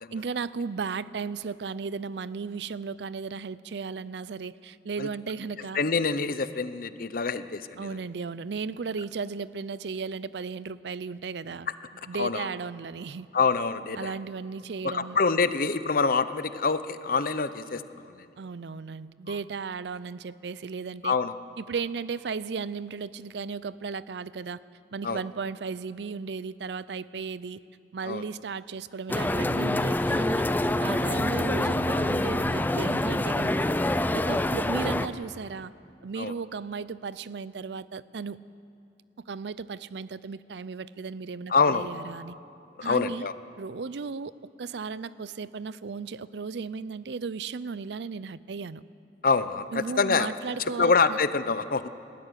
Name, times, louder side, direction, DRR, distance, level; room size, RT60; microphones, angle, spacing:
voice 1, 0.1-5.8 7.8-11.7 12.1-13.3 14.0-15.2 18.4-21.1 21.6-24.6 24.9-27.6 27.9-30.5 30.8-33.8 34.1-35.7 36.0-38.4 39.3-42.3 42.8-43.3 43.6-44.3 44.6-48.8 49.7-51.2, right 5 dB, 75° right, 18 dB, 0.5 m, -35 dB
voice 2, 5.7-8.0 12.2-12.5 13.3-14.1 14.8-17.8 18.2-18.3 21.0-21.3 25.0-25.2 28.0-28.2 30.9-31.1 34.2-34.4 36.2-36.3 41.5-41.9 42.8-43.3 49.2-50.3 50.8-51.9, left 4 dB, 55° left, 13 dB, 0.7 m, -26 dB
sound 1, 29.1-35.1, left 1 dB, 10° left, 0.5 m, -26 dB
19.5 x 13.5 x 9.9 m, 2.6 s
head